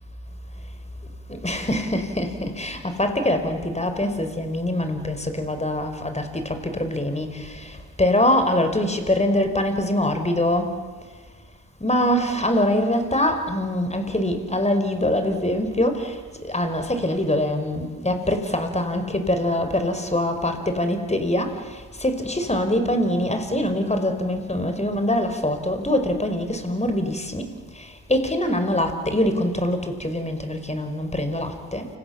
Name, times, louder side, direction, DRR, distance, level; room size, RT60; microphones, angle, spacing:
voice 1, 1.3-7.7 8.0-10.7 11.8-16.1 16.4-21.5 22.0-27.5 28.1-31.9, left 1 dB, 15° left, 7 dB, 5.4 m, -23 dB
29.5 x 26.0 x 7.4 m, 1.4 s
supercardioid pair, 50°, 38 cm